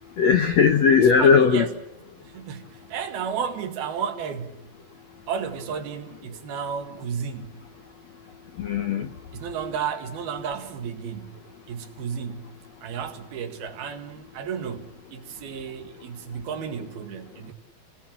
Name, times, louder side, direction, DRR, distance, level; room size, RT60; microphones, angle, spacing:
voice 1, 0.2-1.7 8.6-9.1, left 6 dB, 65° left, 1.7 m, -18 dB
voice 2, 1.0-1.7 2.2-4.6 5.3-7.6 9.3-11.4 11.7-17.5, right 7 dB, 70° right, 3.8 m, -33 dB
30.0 x 19.0 x 7.5 m
omnidirectional pair, 4.5 m